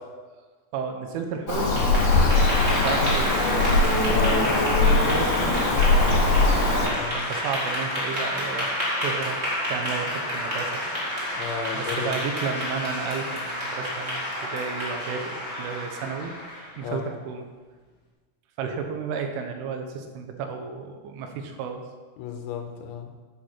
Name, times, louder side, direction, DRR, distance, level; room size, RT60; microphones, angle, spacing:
voice 1, 0.7-1.8 2.7-3.4 4.5-6.4 7.1-8.7 9.0-9.4 9.7-10.8 11.7-16.3 16.8-17.5 18.6-21.8, right 6 dB, 80° right, 4 dB, 3.5 m, -33 dB
Bird vocalization bird call bird song, 1.5-6.9, left 2 dB, 50° left, 2.6 m, -21 dB
Clapping / Applause, 1.5-16.8, left 1 dB, 25° right, 1.5 m, -30 dB
voice 2, 4.0-4.5 6.9-7.3 11.3-12.1 16.8-17.1 22.2-23.1, left 7 dB, 80° left, 4 dB, 3.2 m, -33 dB
9.0 x 7.9 x 5.8 m, 1.4 s
omnidirectional pair, 5.7 m